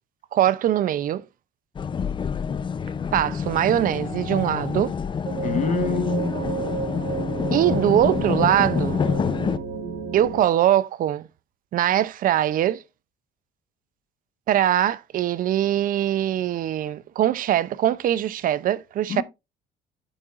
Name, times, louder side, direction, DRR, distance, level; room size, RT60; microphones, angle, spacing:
voice 1, 0.3-1.2 3.1-4.9 7.5-9.0 10.1-11.3 11.7-12.8 14.5-19.2, right 11 dB, 55° right, 0.5 m, -22 dB
sound 1, 1.7-9.6, left 6 dB, 30° left, 0.5 m, -27 dB
sound 2, 5.2-10.4, right 6 dB, 90° right, 1.5 m, -31 dB
voice 2, 5.4-6.4 19.1-19.2, left 4 dB, 45° left, 1.3 m, -26 dB
8.8 x 7.4 x 2.4 m
cardioid pair, 110°, 17 cm